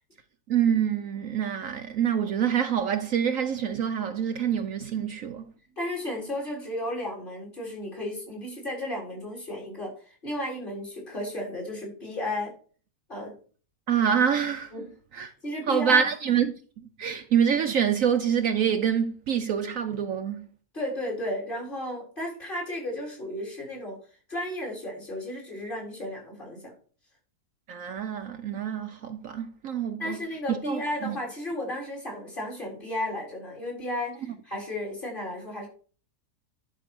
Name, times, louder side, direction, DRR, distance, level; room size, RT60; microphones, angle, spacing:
voice 1, 0.5-5.4 13.9-14.7 15.1-15.3 15.7-16.5 17.0-20.5 27.7-30.2 30.5-31.2 34.3-34.4, right 8 dB, 65° right, 1.1 m, -26 dB
voice 2, 5.8-12.5 13.1-13.4 14.7-16.0 20.7-24.0 24.3-26.7 30.0-35.7, left 1 dB, 30° left, 4.3 m, -34 dB
11.0 x 5.2 x 6.1 m
omnidirectional pair, 1.7 m